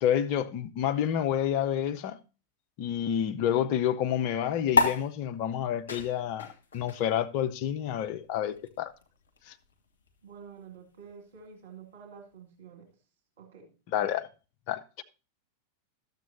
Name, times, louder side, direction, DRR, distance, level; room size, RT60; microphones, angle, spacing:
voice 1, 0.0-2.2 2.8-6.5 6.7-8.9 9.5-9.6 13.9-14.3 14.7-15.0, left 10 dB, 45° left, 0.6 m, -29 dB
sound 1, 4.7-11.5, left 3 dB, 65° left, 1.3 m, -33 dB
voice 2, 10.2-12.9 13.4-13.7, right 6 dB, 60° right, 2.0 m, -49 dB
12.0 x 7.3 x 2.7 m
figure-of-eight pair, 90°, 0 cm